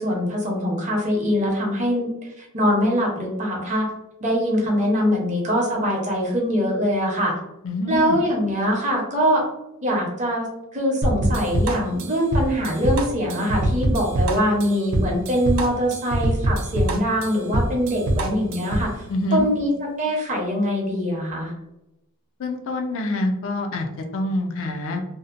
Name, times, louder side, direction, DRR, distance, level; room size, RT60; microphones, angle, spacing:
voice 1, 0.0-3.9 4.2-7.3 7.9-9.4 9.8-10.5 10.7-19.0 19.3-19.7 20.0-21.5, equal, 35° right, -2 dB, 0.8 m, -23 dB
voice 2, 7.6-8.2 19.1-19.5 22.4-25.0, left 1 dB, 60° left, 3 dB, 0.4 m, -26 dB
sound 1, 11.0-18.9, right 1 dB, 65° right, 0.4 m, -23 dB
2.7 x 2.1 x 2.5 m, 0.89 s
head